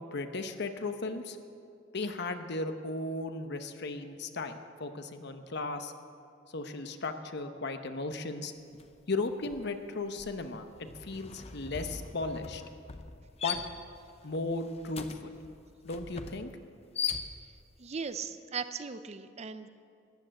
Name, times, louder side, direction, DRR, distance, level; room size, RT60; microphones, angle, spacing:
voice 1, 0.0-1.4 1.9-5.9 6.5-8.5 9.1-12.6 13.4-13.6 14.2-15.3 15.8-16.5, left 3 dB, 60° left, 8 dB, 0.9 m, -36 dB
sound 1, 8.7-9.0 9.3-17.8, left 6 dB, 35° left, 0.7 m, -41 dB
voice 2, 17.8-19.7, right 5 dB, 35° right, 11 dB, 0.5 m, -38 dB
14.0 x 10.5 x 7.6 m, 2.4 s
head